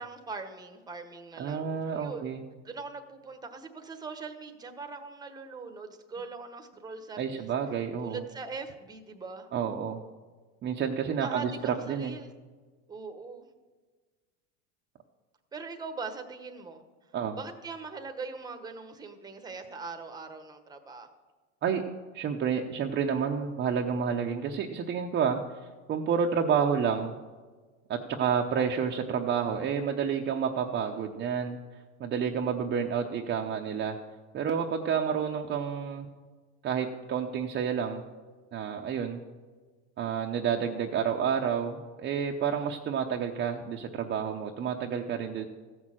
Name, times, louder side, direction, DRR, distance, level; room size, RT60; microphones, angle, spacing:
voice 1, 0.0-2.3 2.6-7.5 8.0-9.5 11.2-12.3 12.9-13.5 15.5-16.8 17.3-21.1, right 4 dB, 10° right, 6 dB, 1.1 m, -41 dB
voice 2, 1.4-2.4 7.2-8.2 9.5-10.0 10.6-12.2 17.1-17.4 21.6-21.8 22.1-25.4 25.9-27.1 27.9-31.6 32.0-34.0 34.3-36.1 36.6-38.0 38.5-39.2 40.0-45.5, right 7 dB, 30° right, 2 dB, 0.8 m, -29 dB
15.0 x 6.3 x 7.5 m, 1.4 s
supercardioid pair, 135°, 35 cm